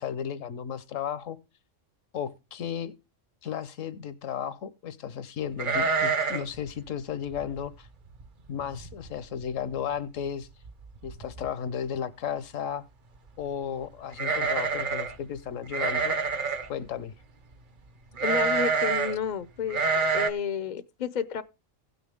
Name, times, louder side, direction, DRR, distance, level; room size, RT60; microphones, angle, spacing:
voice 1, 0.0-1.4 2.1-2.9 3.4-7.9 8.5-10.5 11.0-12.8 13.4-16.2 16.7-17.1, left 8 dB, 80° left, 1.3 m, -34 dB
sound 1, 5.6-6.6 6.8-6.9 7.4-7.7 8.2-8.3 8.6-9.1 9.4-9.5 10.6-10.7 11.0-11.5 14.1-15.1 15.7-16.7 18.2-19.1 19.7-20.3, right 5 dB, 45° right, 0.8 m, -27 dB
voice 2, 18.2-19.8 20.1-21.4, left 7 dB, 50° left, 0.5 m, -31 dB
16.5 x 6.2 x 3.5 m
omnidirectional pair, 1.3 m